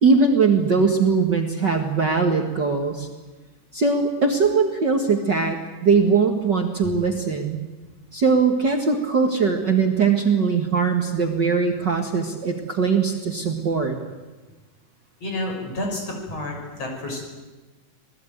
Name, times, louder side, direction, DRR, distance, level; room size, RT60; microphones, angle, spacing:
voice 1, 0.0-3.1 3.7-7.6 8.1-14.0, right 5 dB, 40° right, 3 dB, 2.0 m, -20 dB
voice 2, 15.2-17.2, left 1 dB, 55° left, 2 dB, 7.0 m, -30 dB
27.0 x 19.5 x 9.3 m, 1.2 s
omnidirectional pair, 3.5 m